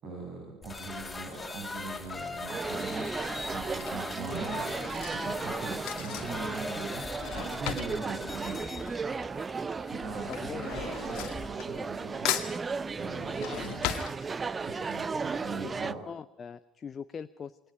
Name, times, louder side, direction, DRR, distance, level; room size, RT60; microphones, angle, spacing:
voice 1, 0.0-3.1 3.5-4.8 5.1-8.7 9.9-12.3 12.9-13.9 14.6-16.0, right 3 dB, 45° right, 1 dB, 7.2 m, -41 dB
sound 1, 0.6-13.8, left 3 dB, 15° left, 5.6 m, -41 dB
Drawer open or close / Cutlery silverware, 2.4-2.6 3.5-9.4 9.6-12.0 12.2-14.8 15.2-15.3 15.5-15.6, left 12 dB, 55° left, 2.1 m, -38 dB
sound 2, 2.5-15.9, right 5 dB, 25° right, 0.8 m, -35 dB
voice 2, 10.2-10.7 15.6-15.7 16.1-17.6, left 6 dB, 35° left, 13 dB, 0.7 m, -41 dB
28.0 x 22.5 x 5.2 m, 0.83 s
figure-of-eight pair, 55°, 0 cm